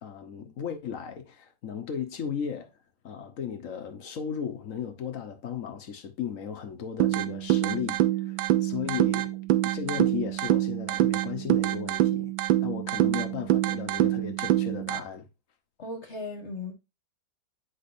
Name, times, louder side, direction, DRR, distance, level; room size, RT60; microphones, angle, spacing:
voice 1, 0.0-2.7 3.0-12.3 12.6-15.3, left 8 dB, 55° left, 1.0 m, -36 dB
sound 1, 7.0-15.0, right 14 dB, 80° right, 1.3 m, -25 dB
voice 2, 15.8-16.7, left 2 dB, 40° left, 1.6 m, -36 dB
8.4 x 5.1 x 2.6 m
omnidirectional pair, 2.1 m